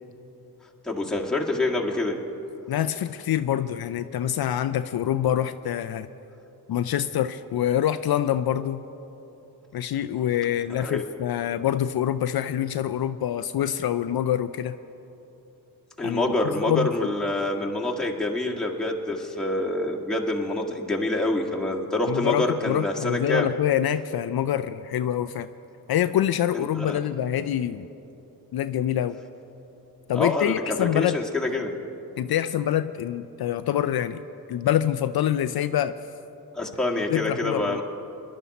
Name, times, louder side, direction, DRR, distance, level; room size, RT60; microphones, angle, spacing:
voice 1, 0.8-2.2 10.8-11.0 16.0-23.5 26.5-27.0 30.2-31.7 36.5-37.8, left 2 dB, ahead, -2 dB, 1.8 m, -26 dB
voice 2, 2.7-6.1 6.7-8.8 9.7-14.8 16.0-17.2 22.1-25.5 25.9-27.9 28.5-29.2 30.1-31.2 32.2-34.2 34.5-35.9 37.1-37.8, left 11 dB, 70° left, 11 dB, 0.5 m, -25 dB
21.0 x 11.5 x 4.2 m, 3.0 s
cardioid pair, 65°, 39 cm